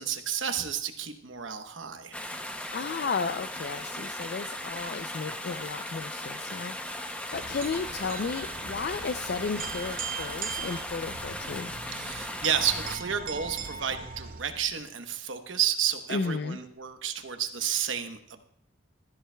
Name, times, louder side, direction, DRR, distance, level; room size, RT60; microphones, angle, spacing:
voice 1, 0.0-2.2 11.9-18.2, right 8 dB, 80° right, 7 dB, 1.0 m, -31 dB
water running pipe loop, 2.1-13.0, left 1 dB, 5° left, 0.6 m, -37 dB
voice 2, 2.7-11.7 16.1-16.6, left 5 dB, 55° left, 11 dB, 0.4 m, -34 dB
sound 1, 7.3-14.8, right 6 dB, 45° right, 0.6 m, -40 dB
15.5 x 13.0 x 2.2 m, 0.73 s
head